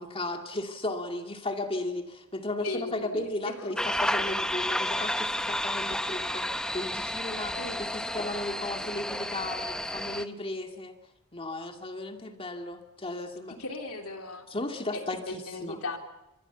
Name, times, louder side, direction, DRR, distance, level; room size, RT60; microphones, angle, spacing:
voice 1, 0.0-10.9 11.3-13.6 14.5-15.8, left 2 dB, 25° left, 4 dB, 2.4 m, -35 dB
voice 2, 2.6-3.6 7.5-7.8 13.6-14.5 14.9-16.0, left 2 dB, 80° left, 4 dB, 3.3 m, -37 dB
sound 1, 3.8-10.3, left 1 dB, 5° left, 0.8 m, -31 dB
24.5 x 23.0 x 7.1 m, 0.96 s
head